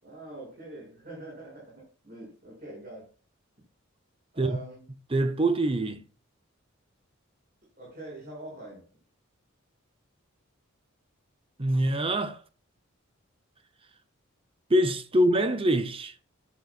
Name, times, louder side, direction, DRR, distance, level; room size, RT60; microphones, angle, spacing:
voice 1, 0.0-3.1 4.3-4.8 7.8-8.9, right 1 dB, 45° right, 7.0 m, -44 dB
voice 2, 5.1-6.0 11.6-12.4 14.7-16.1, right 1 dB, 25° right, 0.9 m, -24 dB
14.0 x 11.5 x 2.5 m
head